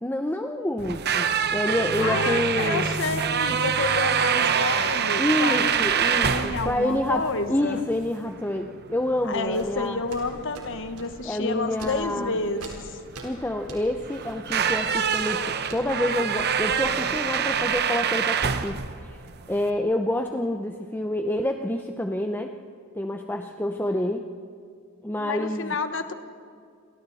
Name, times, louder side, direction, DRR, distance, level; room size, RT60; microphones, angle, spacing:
voice 1, 0.0-2.9 5.2-10.0 11.2-12.4 13.2-19.2 19.5-22.5 22.9-24.3 25.0-25.7, left 1 dB, 10° left, 4 dB, 0.7 m, -28 dB
sound 1, 0.8-19.7, right 7 dB, 50° right, 0.9 m, -26 dB
voice 2, 2.0-5.9 6.2-7.8 9.2-13.0 25.2-26.1, left 3 dB, 60° left, 8 dB, 1.3 m, -29 dB
sound 2, 5.2-8.2 8.9-11.2 11.7-17.9, right 2 dB, 85° right, 4.2 m, -47 dB
29.5 x 24.5 x 4.2 m, 2.2 s
head